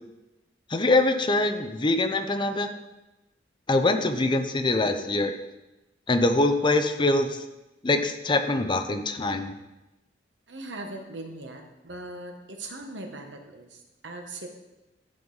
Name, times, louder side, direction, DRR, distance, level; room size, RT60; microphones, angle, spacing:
voice 1, 0.7-2.7 3.7-5.3 6.1-7.4 7.8-9.5, left 2 dB, 25° left, 7 dB, 0.6 m, -24 dB
voice 2, 10.5-14.5, right 2 dB, 80° right, 4 dB, 1.1 m, -40 dB
10.5 x 5.4 x 3.9 m, 1.0 s
head